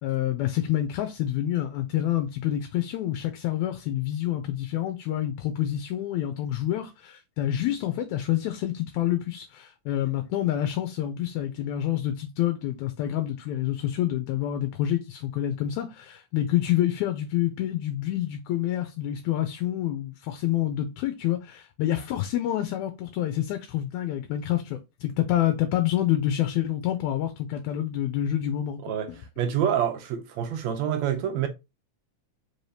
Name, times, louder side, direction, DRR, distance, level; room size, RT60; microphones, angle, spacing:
voice 1, 0.0-28.8, left 12 dB, 80° left, 1.9 m, -27 dB
voice 2, 28.8-31.5, right 9 dB, 75° right, 1.7 m, -27 dB
4.6 x 3.2 x 2.7 m
omnidirectional pair, 3.4 m